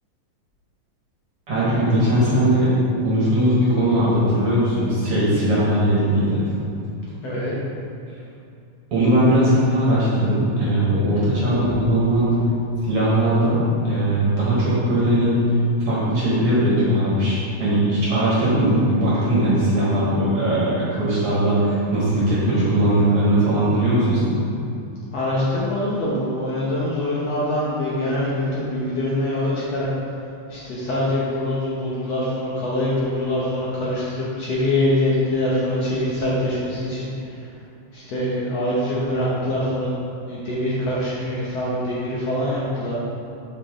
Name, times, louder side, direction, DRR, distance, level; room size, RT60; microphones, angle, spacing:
voice 1, 1.5-2.8 3.0-6.5 8.9-12.4 12.8-15.4 15.9-24.4, right 1 dB, 50° right, -8 dB, 2.2 m, -19 dB
voice 2, 7.2-7.5 25.1-29.9 30.5-37.1 37.9-40.0 40.3-42.9, left 1 dB, 65° left, -7 dB, 1.8 m, -24 dB
7.8 x 5.8 x 3.7 m, 2.5 s
omnidirectional pair, 3.9 m